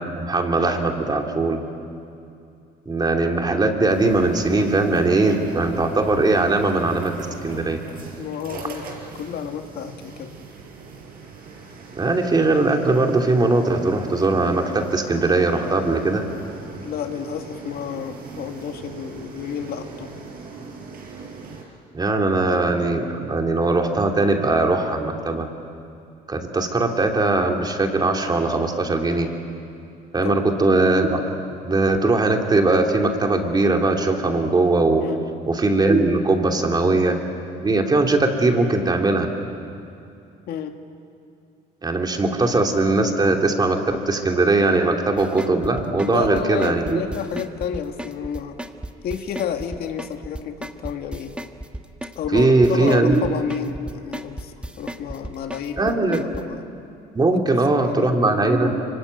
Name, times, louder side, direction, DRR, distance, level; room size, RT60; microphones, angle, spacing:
voice 1, 0.2-1.6 2.9-7.8 12.0-16.2 21.9-25.5 26.3-29.3 30.1-31.3 31.6-35.0 35.5-37.2 37.6-39.3 41.8-47.0 52.3-53.2 55.8-56.2 57.1-58.8, right 2 dB, 25° right, 3 dB, 3.0 m, -20 dB
sound 1, 3.9-21.6, right 5 dB, 65° right, 5.4 m, -39 dB
voice 2, 8.2-8.9 9.1-10.4 16.8-20.3 30.2-30.4 35.0-35.3 40.5-40.8 46.0-48.6 49.0-51.4 52.2-56.6 57.7-58.2, left 8 dB, 65° left, 5 dB, 2.0 m, -31 dB
sound 2, 45.2-56.4, right 1 dB, 5° right, 1.4 m, -34 dB
25.0 x 25.0 x 9.4 m, 2.6 s
cardioid pair, 110°, 17 cm